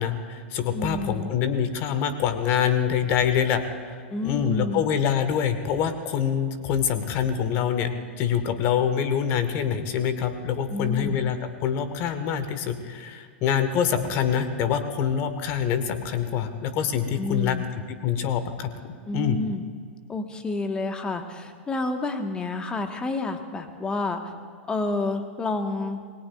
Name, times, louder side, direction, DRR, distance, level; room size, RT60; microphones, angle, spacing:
voice 1, 0.0-7.9 8.2-17.6 17.9-19.4, left 8 dB, 35° left, 10 dB, 1.4 m, -25 dB
voice 2, 0.7-1.3 4.1-4.8 10.7-11.2 17.2-17.6 19.1-19.6 20.1-24.3 24.7-26.0, left 2 dB, 15° left, 7 dB, 1.4 m, -29 dB
28.0 x 21.0 x 2.5 m, 2.1 s
figure-of-eight pair, 95°, 6 cm